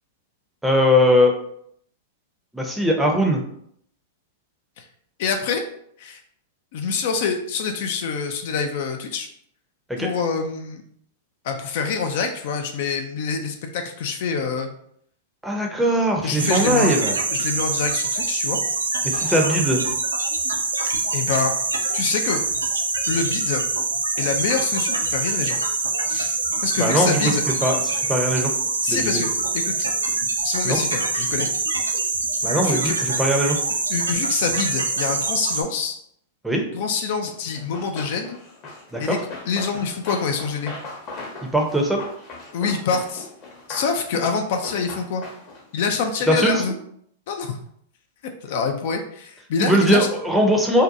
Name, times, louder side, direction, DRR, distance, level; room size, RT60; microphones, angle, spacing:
voice 1, 0.6-1.3 2.5-3.4 9.9-10.1 15.4-17.2 19.0-19.8 26.8-27.2 27.6-28.5 28.9-29.2 30.6-30.8 32.4-33.6 36.4-36.6 38.9-39.2 41.5-42.0 46.3-46.5 49.6-50.8, equal, 5° right, 1 dB, 0.5 m, -20 dB
voice 2, 5.2-5.6 6.0-6.2 6.7-9.3 10.0-10.8 11.4-14.7 16.2-17.0 17.3-18.6 21.1-21.5 21.9-22.4 23.1-23.6 24.2-25.6 26.1-27.4 28.8-29.9 30.4-31.5 32.6-33.0 33.9-35.9 36.7-38.4 39.0-39.2 39.5-40.7 42.5-43.3 43.7-45.2 45.7-46.7 47.3-47.6 48.4-50.1, left 5 dB, 60° left, 5 dB, 0.3 m, -26 dB
sound 1, 16.4-35.6, right 3 dB, 85° right, 0.3 m, -24 dB
Run, 37.5-45.7, left 3 dB, 40° left, 0.8 m, -39 dB
2.6 x 2.2 x 2.5 m, 0.68 s
hypercardioid pair, 100°, 0 cm